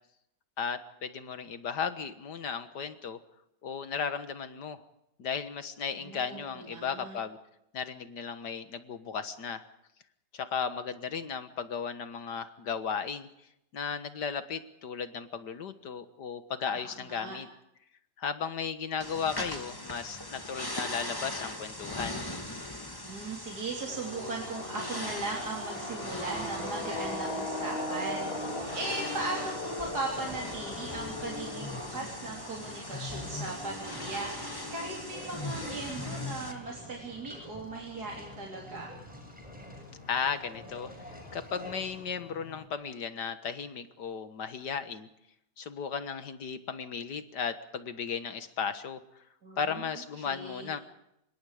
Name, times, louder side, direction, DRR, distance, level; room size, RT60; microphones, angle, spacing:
voice 1, 0.6-3.2 3.6-4.8 5.2-7.4 7.7-9.6 10.3-13.3 13.7-17.5 18.2-22.2 40.1-45.1 45.6-49.0 49.6-50.8, left 6 dB, 75° left, 11 dB, 2.0 m, -35 dB
voice 2, 6.0-7.2 16.7-17.4 22.9-38.9 49.4-49.9 50.2-50.7, right 2 dB, 65° right, -1 dB, 4.0 m, -38 dB
sound 1, 19.0-36.5, left 1 dB, 15° left, 2.3 m, -40 dB
sound 2, 23.9-42.7, left 1 dB, 35° left, 3.3 m, -41 dB
sound 3, 33.1-42.0, equal, 5° right, 6.5 m, -49 dB
26.0 x 22.5 x 5.0 m, 0.80 s
omnidirectional pair, 1.8 m